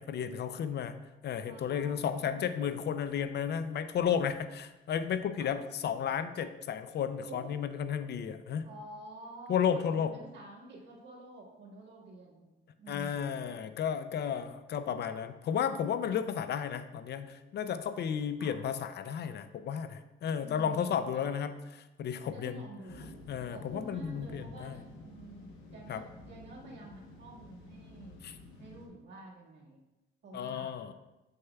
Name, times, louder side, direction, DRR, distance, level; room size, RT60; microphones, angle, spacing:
voice 1, 0.0-8.7 9.5-10.2 12.9-21.5 22.0-22.6 23.3-24.7 25.9-26.0 28.2-28.3 30.3-30.9, left 8 dB, 60° left, 11 dB, 0.4 m, -33 dB
voice 2, 1.5-2.5 5.3-5.6 7.2-7.6 8.6-12.5 12.8-13.7 18.4-18.6 20.4-21.3 22.3-23.1 23.5-28.2 28.6-29.8 30.2-30.8, right 2 dB, 60° right, -4 dB, 1.8 m, -49 dB
sound 1, 22.9-28.9, left 2 dB, 90° left, 1.0 m, -51 dB
7.0 x 6.4 x 2.3 m, 1.0 s
cardioid pair, 90°, 20 cm